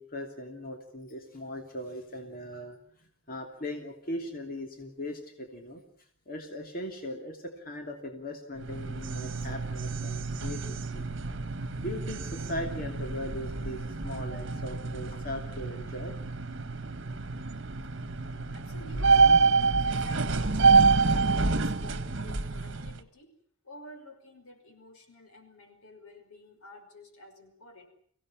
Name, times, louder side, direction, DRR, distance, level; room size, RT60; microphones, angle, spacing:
voice 1, 0.0-5.8 6.3-11.1 11.8-16.1, left 1 dB, 40° left, 3 dB, 2.9 m, -39 dB
sound 1, 8.6-23.0, right 4 dB, 55° right, 1.5 m, -27 dB
voice 2, 18.5-23.4 23.6-27.9, left 1 dB, 85° left, 7 dB, 5.6 m, -51 dB
24.5 x 17.0 x 9.9 m, 0.63 s
head